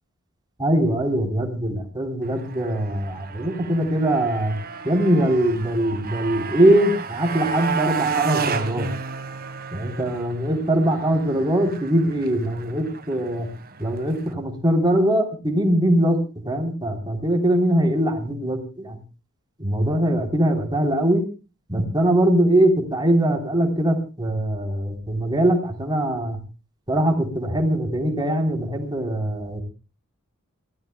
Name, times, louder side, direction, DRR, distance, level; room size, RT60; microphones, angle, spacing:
voice 1, 0.6-4.6 4.8-8.9 9.7-13.5 13.8-16.2 16.4-19.0 19.6-21.2 21.7-26.4 26.9-29.6, right 1 dB, 20° right, 3 dB, 3.9 m, -22 dB
Motorcycle, 2.2-14.3, right 5 dB, 45° right, 1.6 m, -32 dB
27.0 x 17.5 x 2.3 m, 0.34 s
head